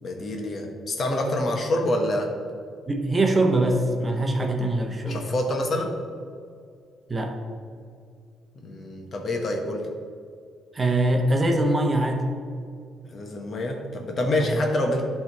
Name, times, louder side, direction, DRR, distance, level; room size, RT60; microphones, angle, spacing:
voice 1, 0.0-2.3 5.1-5.9 8.6-9.9 13.1-15.0, left 1 dB, 50° left, 2 dB, 1.2 m, -26 dB
voice 2, 2.9-5.2 7.1-7.4 10.7-12.3 14.4-14.6, right 1 dB, 25° right, 3 dB, 1.0 m, -23 dB
10.5 x 3.6 x 4.7 m, 2.3 s
cardioid pair, 90°, 0 cm